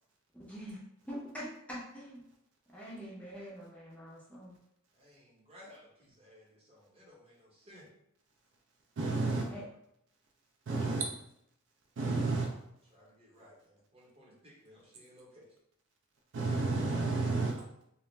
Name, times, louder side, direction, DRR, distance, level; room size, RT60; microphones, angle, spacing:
voice 1, 0.3-0.8 1.1-2.2 2.7-4.6 9.4-9.7, equal, 5° left, -6 dB, 0.5 m, -44 dB
voice 2, 4.9-7.9 12.9-15.5, left 1 dB, 25° right, -5 dB, 0.8 m, -58 dB
voice 3, 9.0-9.5 10.7-11.1 12.0-12.5 16.3-17.5, right 3 dB, 55° right, 0 dB, 0.3 m, -31 dB
2.4 x 2.1 x 3.1 m, 0.77 s
head